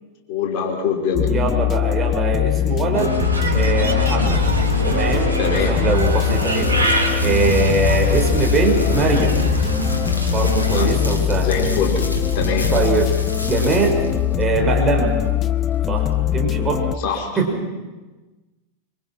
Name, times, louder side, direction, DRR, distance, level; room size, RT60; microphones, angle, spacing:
voice 1, 0.3-1.3 5.4-5.7 10.6-11.0 11.3-12.0 12.3-12.7 17.0-17.4, left 5 dB, 45° left, 1 dB, 5.0 m, -24 dB
sound 1, 1.1-17.0, left 11 dB, 25° left, 0.8 m, -21 dB
voice 2, 1.3-3.2 3.5-4.4 4.9-9.4 10.3-11.6 12.7-13.1 13.4-14.0 14.4-15.1 15.9-16.1 16.3-16.8 17.4-17.7, right 4 dB, 20° right, 1 dB, 5.1 m, -22 dB
Bird, 2.9-10.9, right 2 dB, 80° right, 3.1 m, -24 dB
sound 2, 5.9-16.9, left 2 dB, 80° left, 2.6 m, -32 dB
25.5 x 24.5 x 6.0 m, 1.2 s
figure-of-eight pair, 90°, 0 cm